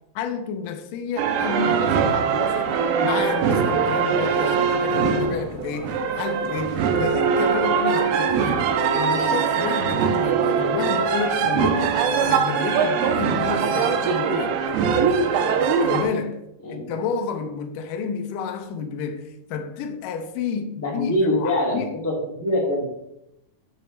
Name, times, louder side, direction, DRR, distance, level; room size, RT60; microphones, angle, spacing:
voice 1, 0.2-2.7 3.0-12.0 12.3-14.6 15.8-16.4 16.7-21.9, left 6 dB, 80° left, 1.9 m, -30 dB
sound 1, 1.2-16.0, right 6 dB, 85° right, 2.7 m, -22 dB
voice 2, 20.8-22.1 22.4-22.8, left 1 dB, 10° left, 1.2 m, -23 dB
6.8 x 6.5 x 3.2 m
omnidirectional pair, 4.5 m